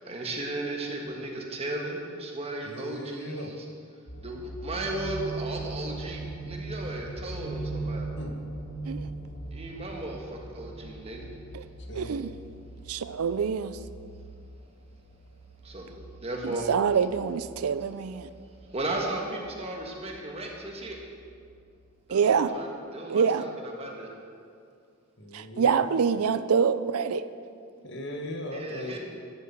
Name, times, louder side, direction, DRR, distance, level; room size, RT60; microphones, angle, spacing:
voice 1, 0.1-3.6 4.2-6.2 6.5-8.1 9.5-11.2 15.6-15.9 16.2-16.7 18.7-21.0 22.1-24.1 28.5-29.0, right 2 dB, 30° right, 0 dB, 1.5 m, -35 dB
voice 2, 2.6-3.5 8.2-8.3 11.9-12.2 25.2-25.8 27.8-29.0, left 1 dB, 55° left, 2 dB, 1.4 m, -38 dB
sound 1, 4.1-21.9 22.3-22.4, right 2 dB, 75° left, 2.5 m, -40 dB
voice 3, 12.0-12.3 12.9-13.8 16.4-18.3 22.1-22.5 23.1-23.5 25.3-27.2, right 6 dB, 90° right, 13 dB, 0.5 m, -25 dB
11.0 x 7.7 x 7.4 m, 2.3 s
head